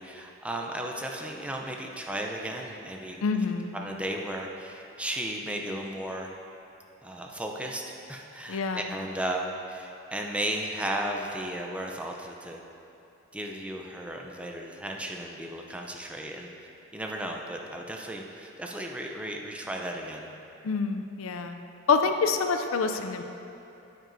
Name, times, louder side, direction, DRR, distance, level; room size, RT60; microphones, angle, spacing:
voice 1, 0.0-3.2 3.7-6.3 7.0-7.8 8.1-12.6 13.3-16.5 16.9-20.3 22.9-23.0, right 1 dB, 5° right, 0 dB, 0.5 m, -35 dB
voice 2, 3.2-3.7 8.5-8.9 20.6-21.6 21.9-23.2, left 5 dB, 85° left, 7 dB, 0.5 m, -26 dB
9.1 x 8.8 x 2.6 m, 2.8 s
head